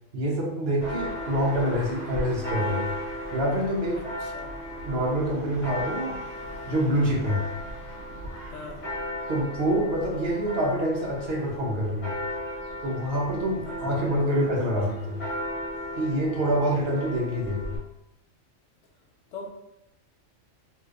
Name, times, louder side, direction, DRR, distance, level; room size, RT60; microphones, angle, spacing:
voice 1, 0.1-2.9 3.3-4.0 4.8-6.2 6.7-7.4 9.3-12.1 12.8-15.2 16.0-17.7, equal, 55° right, -3 dB, 1.0 m, -26 dB
Church bell, 0.8-17.8, equal, 50° left, 1.3 m, -36 dB
voice 2, 3.9-4.6 8.5-8.8 19.3-19.5, left 3 dB, 70° left, 1 dB, 0.9 m, -41 dB
3.1 x 2.9 x 2.4 m, 0.83 s
omnidirectional pair, 1.4 m